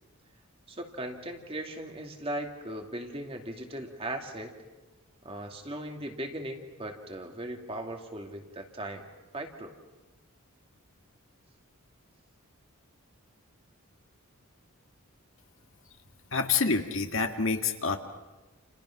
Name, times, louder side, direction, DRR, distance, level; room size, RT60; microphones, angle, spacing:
voice 1, 0.7-4.5 5.2-9.1 9.3-9.8, right 1 dB, 25° right, 3 dB, 2.4 m, -38 dB
voice 2, 16.3-18.0, left 4 dB, 60° left, 5 dB, 1.9 m, -27 dB
30.0 x 29.0 x 5.9 m, 1.1 s
head